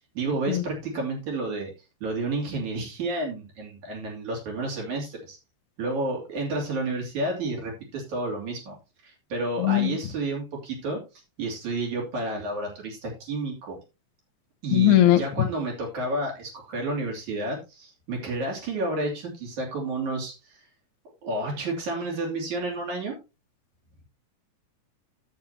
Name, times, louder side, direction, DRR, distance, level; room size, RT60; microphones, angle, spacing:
voice 1, 0.1-1.7 2.0-5.4 5.8-8.8 9.0-11.0 11.4-13.8 14.6-20.6 21.2-23.2, right 2 dB, 70° right, 4.3 m, -30 dB
voice 2, 9.6-10.0 14.7-15.2, left 13 dB, 75° left, 2.2 m, -19 dB
11.0 x 8.4 x 2.9 m
omnidirectional pair, 3.6 m